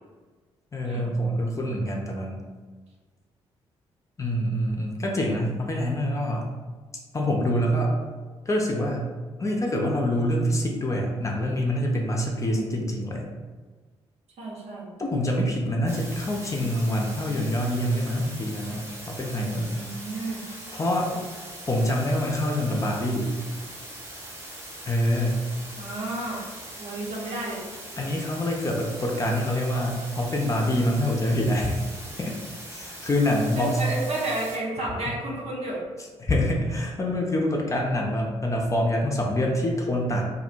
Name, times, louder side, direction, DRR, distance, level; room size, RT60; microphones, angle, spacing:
voice 1, 0.7-2.4 4.2-6.5 7.1-7.9 8.5-9.1 9.4-13.2 15.0-19.8 20.7-21.1 21.7-23.3 24.8-25.4 28.0-31.8 32.2-32.3 32.7-33.8 36.2-40.2, left 1 dB, 20° left, -1 dB, 0.4 m, -25 dB
voice 2, 12.4-12.8 14.4-14.9 19.8-20.4 21.1-21.2 25.8-26.4 26.8-27.6 33.6-35.8, right 2 dB, 50° right, -4 dB, 0.7 m, -32 dB
sound 1, 15.9-34.6, right 1 dB, 20° right, 0.8 m, -41 dB
2.4 x 2.0 x 2.6 m, 1.4 s
figure-of-eight pair, 40°, 14 cm